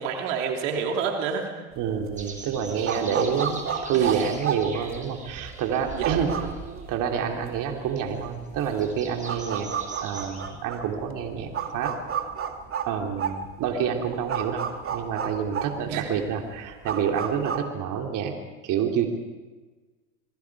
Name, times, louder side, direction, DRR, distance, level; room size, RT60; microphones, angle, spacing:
voice 1, 0.0-1.5 3.9-4.2 5.9-6.5 15.9-16.1, right 6 dB, 75° right, 2 dB, 3.2 m, -29 dB
voice 2, 1.7-6.3 6.9-9.7 10.0-11.9 12.8-14.7 14.9-18.3 18.6-19.1, right 7 dB, 55° right, 2 dB, 3.3 m, -28 dB
sound 1, 1.8-17.6, right 7 dB, 35° right, 2.4 m, -32 dB
sound 2, 2.2-10.4, right 3 dB, 20° right, 6.7 m, -43 dB
29.0 x 22.0 x 4.9 m, 1.3 s
hypercardioid pair, 90°, 36 cm